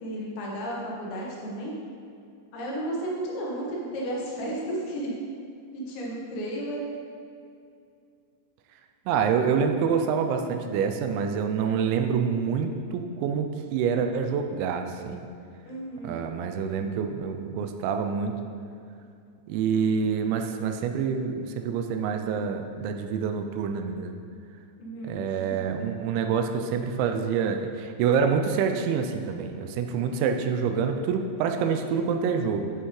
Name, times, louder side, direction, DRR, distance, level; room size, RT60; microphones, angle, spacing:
voice 1, 0.0-1.7 2.5-5.1 5.7-6.8 15.7-16.2 24.8-25.5, right 1 dB, 80° left, -3 dB, 3.6 m, -33 dB
voice 2, 9.1-15.3 16.0-18.3 19.5-24.2 25.0-32.7, right 6 dB, 90° right, 5 dB, 2.9 m, -27 dB
11.5 x 5.6 x 3.2 m, 2.4 s
omnidirectional pair, 5.1 m